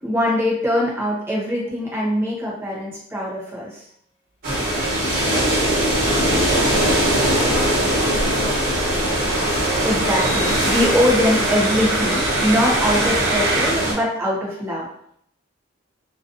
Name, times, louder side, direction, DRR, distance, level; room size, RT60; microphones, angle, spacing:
voice 1, 0.0-3.8 9.8-14.9, left 1 dB, 10° right, -5 dB, 0.7 m, -22 dB
sound 1, 4.4-13.9, right 1 dB, 50° right, 0.9 m, -21 dB
voice 2, 4.9-8.8, left 1 dB, 30° left, -5 dB, 0.6 m, -33 dB
sound 2, 5.4-13.7, right 2 dB, 70° right, 0.5 m, -29 dB
2.4 x 2.2 x 2.5 m, 0.68 s
head